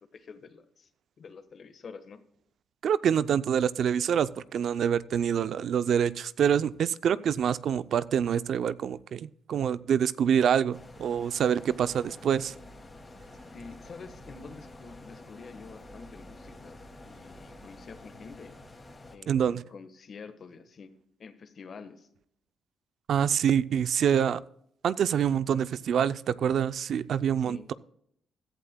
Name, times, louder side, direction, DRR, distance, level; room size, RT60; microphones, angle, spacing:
voice 1, 0.1-0.9 1.2-2.2 13.5-16.8 17.0-18.5 19.1-20.9 21.2-22.1 27.4-27.7, left 5 dB, 50° left, 10 dB, 1.3 m, -47 dB
voice 2, 2.8-12.5 19.3-19.6 23.1-24.4 24.8-27.7, right 8 dB, 65° right, 16 dB, 0.4 m, -26 dB
sound 1, 10.7-19.2, left 1 dB, 25° left, 2.2 m, -49 dB
16.5 x 11.5 x 2.2 m, 0.69 s
cardioid pair, 90°, 0 cm